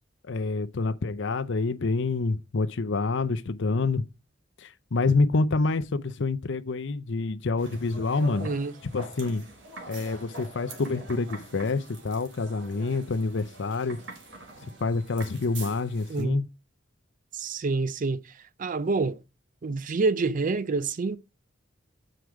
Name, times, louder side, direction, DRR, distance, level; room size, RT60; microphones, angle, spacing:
voice 1, 0.3-4.0 4.6-8.5 8.9-9.4 9.9-14.0 14.8-16.5, left 3 dB, 70° left, 0.6 m, -27 dB
sound 1, 7.6-16.2, right 2 dB, 70° right, 1.9 m, -44 dB
voice 2, 8.4-8.7 16.1-16.4 17.3-18.2 18.6-19.2 19.6-21.2, right 3 dB, 45° right, 0.5 m, -27 dB
7.9 x 4.9 x 4.6 m
head